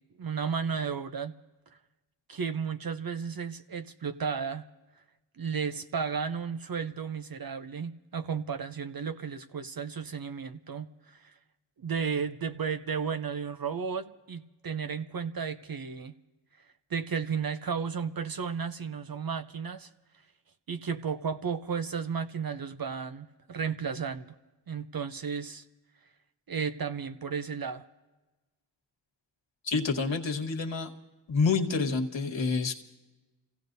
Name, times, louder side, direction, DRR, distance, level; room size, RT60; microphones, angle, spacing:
voice 1, 0.2-1.3 2.3-4.6 5.4-11.3 11.8-16.1 16.9-19.9 20.7-24.3 24.7-25.6 26.5-27.8, right 6 dB, 50° right, 10 dB, 0.7 m, -33 dB
voice 2, 29.6-30.9 31.3-32.7, left 4 dB, 70° left, 2 dB, 1.5 m, -28 dB
29.5 x 16.5 x 2.7 m, 1.1 s
cardioid pair, 45°, 47 cm